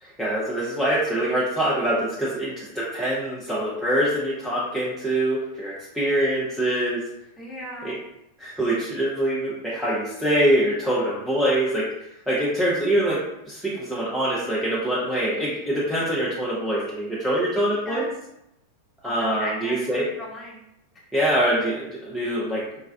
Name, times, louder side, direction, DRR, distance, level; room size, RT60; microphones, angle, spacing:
voice 1, 0.0-7.0 7.8-7.9 8.4-13.2 13.5-18.1 19.0-20.1 21.1-22.6, right 1 dB, ahead, -8 dB, 0.6 m, -24 dB
voice 2, 7.4-8.0 17.9-18.1 19.0-20.6, left 1 dB, 20° left, -4 dB, 0.9 m, -36 dB
3.4 x 2.2 x 2.2 m, 0.85 s
figure-of-eight pair, 90°, 0 cm